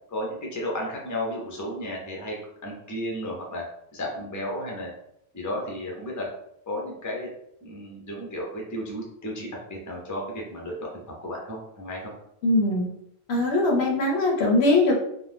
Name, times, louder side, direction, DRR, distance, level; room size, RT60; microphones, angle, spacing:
voice 1, 0.1-2.4 2.6-3.6 3.9-4.9 5.3-6.3 6.7-7.3 7.6-10.9 11.2-12.1, left 1 dB, 20° left, -1 dB, 0.5 m, -33 dB
voice 2, 12.4-12.9 13.3-14.9, left 2 dB, 75° left, 0 dB, 0.9 m, -21 dB
2.6 x 2.2 x 3.3 m, 0.74 s
omnidirectional pair, 1.1 m